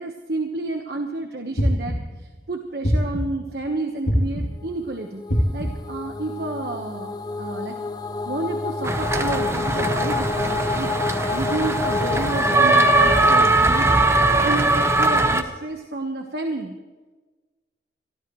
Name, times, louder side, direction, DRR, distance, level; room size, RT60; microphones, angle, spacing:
voice 1, 0.0-5.2 5.5-7.8 8.3-11.0 11.3-13.9 14.4-16.7, right 2 dB, 60° right, 3 dB, 1.2 m, -30 dB
sound 1, 1.6-2.2 2.8-3.5 4.1-4.7 5.3-5.9, equal, 85° left, 3.0 m, -23 dB
sound 2, 5.0-13.5, left 3 dB, 25° left, 0.7 m, -28 dB
sound 3, 8.8-15.4, right 2 dB, 15° right, 0.8 m, -20 dB
23.0 x 14.0 x 3.1 m, 1.3 s
head